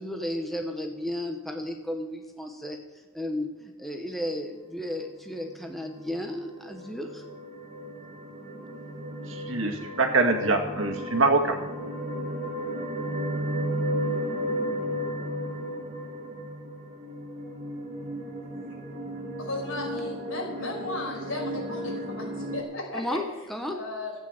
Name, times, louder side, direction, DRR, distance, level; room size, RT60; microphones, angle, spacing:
voice 1, 0.0-2.8 3.1-7.2 22.9-23.8, left 1 dB, ahead, 3 dB, 1.0 m, -33 dB
sound 1, 5.3-22.6, equal, 35° right, 1.9 m, -34 dB
voice 2, 9.3-11.6, right 3 dB, 65° right, 3 dB, 1.9 m, -24 dB
voice 3, 19.4-23.2 23.7-24.1, left 2 dB, 75° left, -1 dB, 5.6 m, -35 dB
14.5 x 9.0 x 7.8 m, 1.2 s
head